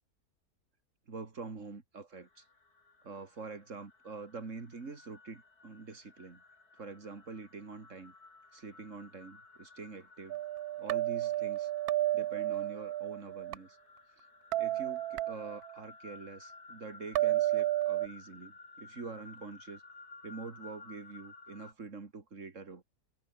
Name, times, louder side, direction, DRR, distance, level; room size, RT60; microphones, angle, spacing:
voice 1, 1.1-2.4 3.0-6.4 6.8-8.1 8.5-10.4 10.8-11.7 12.1-13.8 14.6-19.8 20.2-22.8, right 4 dB, 45° right, 2.9 m, -45 dB
sound 1, 2.1-21.7, left 3 dB, 65° left, 4.2 m, -56 dB
sound 2, 10.3-13.5 14.5-15.8 17.1-18.1, right 14 dB, 70° right, 1.0 m, -32 dB
omnidirectional pair, 1.8 m